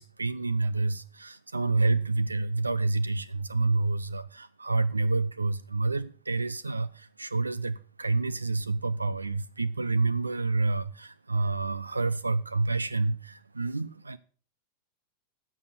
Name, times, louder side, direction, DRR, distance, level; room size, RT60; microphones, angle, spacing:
voice 1, 0.0-14.2, right 3 dB, 80° right, 0.5 m, -28 dB
14.0 x 8.4 x 6.8 m
figure-of-eight pair, 90°, 0 cm